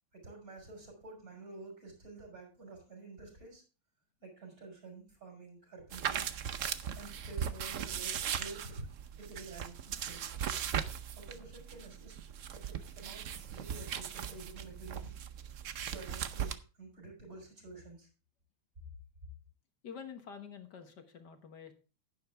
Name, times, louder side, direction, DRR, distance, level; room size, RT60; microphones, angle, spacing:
voice 1, 0.1-3.6 4.2-6.3 6.9-8.9 9.2-10.2 11.1-12.1 12.5-15.1 15.9-18.1, right 3 dB, 40° right, 1 dB, 6.0 m, -49 dB
sound 1, 5.9-16.6, right 8 dB, 65° right, 0.7 m, -38 dB
voice 2, 19.8-21.7, left 7 dB, 55° left, 7 dB, 1.8 m, -48 dB
11.0 x 10.5 x 3.4 m, 0.33 s
omnidirectional pair, 2.3 m